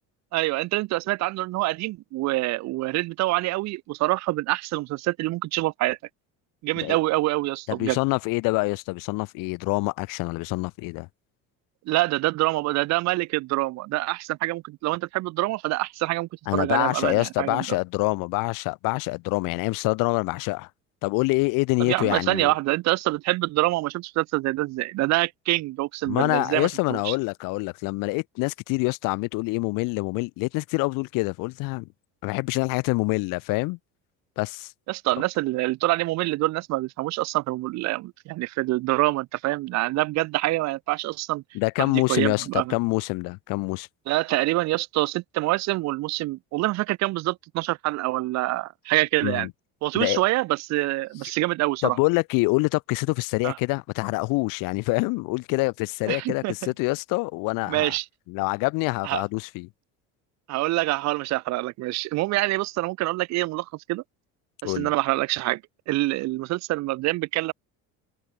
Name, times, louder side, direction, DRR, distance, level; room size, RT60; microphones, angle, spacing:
voice 1, 0.3-6.0 6.6-8.0 11.9-17.7 21.8-27.1 34.9-41.4 41.8-42.8 44.1-49.5 49.8-52.0 53.4-53.6 56.1-56.5 57.7-58.0 59.0-59.2 60.5-64.0 64.6-65.6 65.9-67.5, right 19 dB, 55° right, 0.5 m, -26 dB
voice 2, 7.7-11.1 16.5-20.7 21.0-22.5 26.1-31.9 32.2-33.8 34.4-34.7 41.5-43.9 49.2-49.5 49.9-50.2 51.8-57.9 58.3-59.7 64.6-64.9, left 26 dB, 75° left, 0.9 m, -26 dB
cardioid pair, 135°, 33 cm